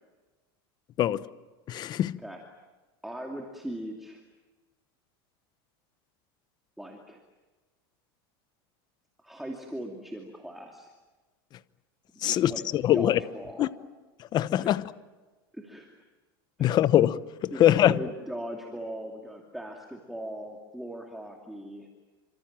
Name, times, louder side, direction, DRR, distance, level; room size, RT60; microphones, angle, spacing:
voice 1, 1.7-2.2 12.2-13.2 13.6-13.7 14.3-14.8 16.6-18.0, left 12 dB, 35° left, 0.9 m, -23 dB
voice 2, 3.0-4.2 6.8-7.2 9.2-10.9 12.2-13.7 14.6-14.7 15.5-15.9 16.6-16.7 17.5-21.9, right 1 dB, ahead, 2.7 m, -39 dB
28.0 x 26.0 x 7.5 m
supercardioid pair, 145°, 13 cm